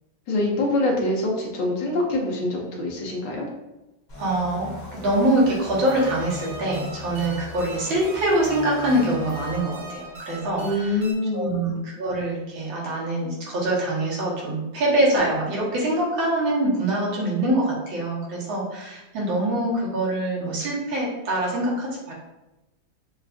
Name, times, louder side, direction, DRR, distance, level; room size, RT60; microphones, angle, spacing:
voice 1, 0.3-3.5 10.6-11.6, left 2 dB, 70° left, -2 dB, 1.4 m, -25 dB
sound 1, 4.1-9.6, left 3 dB, 45° left, 0.6 m, -39 dB
voice 2, 4.2-11.0 11.3-22.1, right 1 dB, 85° right, -4 dB, 1.9 m, -24 dB
sound 2, 5.8-11.1, right 2 dB, 40° right, 1.2 m, -40 dB
6.3 x 2.4 x 2.4 m, 1.0 s
omnidirectional pair, 2.1 m